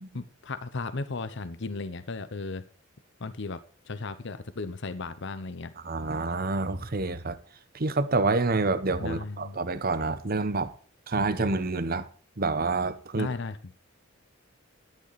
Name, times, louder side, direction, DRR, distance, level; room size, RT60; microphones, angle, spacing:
voice 1, 0.1-2.6 3.2-3.6 3.9-5.7 9.0-9.6 13.1-13.6, left 3 dB, 60° left, 0.8 m, -35 dB
voice 2, 5.8-7.4 7.7-10.7 11.1-12.1 12.4-13.3, right 3 dB, 45° right, 1.0 m, -27 dB
11.5 x 9.3 x 4.1 m
head